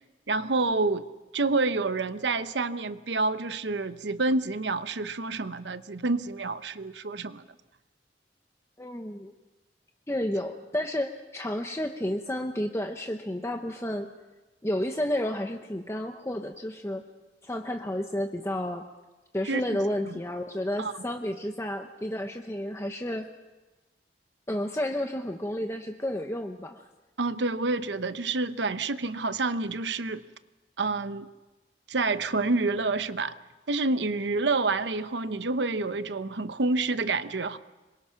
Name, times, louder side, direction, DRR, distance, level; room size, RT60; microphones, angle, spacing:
voice 1, 0.3-1.1 1.3-7.5 19.5-19.6 20.1-20.2 20.8-20.9 27.2-30.2 30.8-31.3 31.9-33.4 33.7-37.6, right 3 dB, 85° right, 12 dB, 0.9 m, -28 dB
voice 2, 8.8-9.3 10.1-14.1 14.6-17.0 17.4-18.9 19.3-23.3 24.5-26.9, left 1 dB, 15° left, 4 dB, 0.9 m, -31 dB
26.0 x 22.5 x 5.8 m, 1.2 s
head